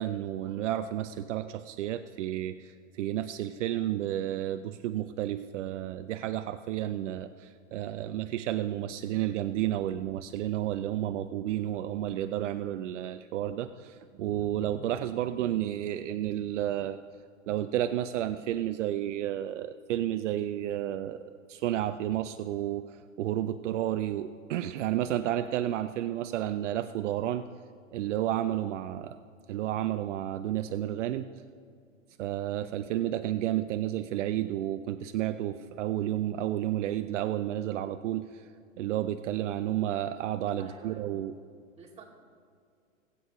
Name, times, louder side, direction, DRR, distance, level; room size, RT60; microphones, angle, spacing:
voice 1, 0.0-17.0 17.5-27.5 27.9-29.2 29.5-31.3 32.2-38.5 38.8-41.3, right 12 dB, 65° right, 10 dB, 0.6 m, -31 dB
voice 2, 40.6-41.0 41.8-42.0, right 5 dB, 15° right, -3 dB, 2.4 m, -49 dB
20.5 x 8.4 x 3.1 m, 2.3 s
hypercardioid pair, 115°, 39 cm